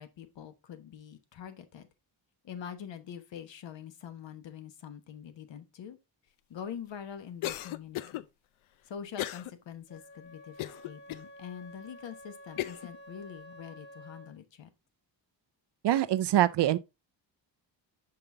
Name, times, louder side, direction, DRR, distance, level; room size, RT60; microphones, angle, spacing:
voice 1, 0.0-1.9 2.4-6.0 6.5-8.3 8.9-14.7, left 8 dB, 65° left, 1.1 m, -44 dB
Cough, 7.4-8.2 9.2-9.5 10.0-10.1 10.6-11.2 11.9-12.0 12.6-12.9, left 15 dB, 85° left, 0.6 m, -35 dB
Wind instrument woodwind instrument, 9.9-14.4, equal, 20° left, 1.0 m, -51 dB
voice 2, 15.8-16.8, right 13 dB, 60° right, 0.5 m, -24 dB
5.6 x 5.5 x 3.7 m
wide cardioid pair, 150°, 47 cm